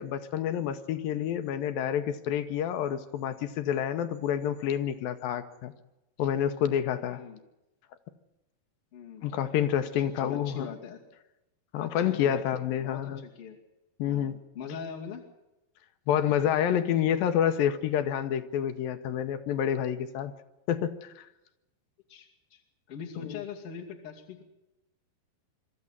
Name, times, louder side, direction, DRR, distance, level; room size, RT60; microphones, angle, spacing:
voice 1, 0.0-5.7 6.2-7.2 9.2-10.7 11.7-13.2 14.0-14.4 16.1-20.3 20.7-21.3 23.2-23.4, left 9 dB, 75° left, 9 dB, 2.5 m, -28 dB
voice 2, 7.1-7.4 8.9-9.3 10.0-11.0 11.8-12.4 12.8-13.6 14.0-15.2 22.1-22.6 22.9-24.4, left 6 dB, 40° left, 0 dB, 3.1 m, -42 dB
23.5 x 13.5 x 9.7 m, 0.94 s
omnidirectional pair, 4.4 m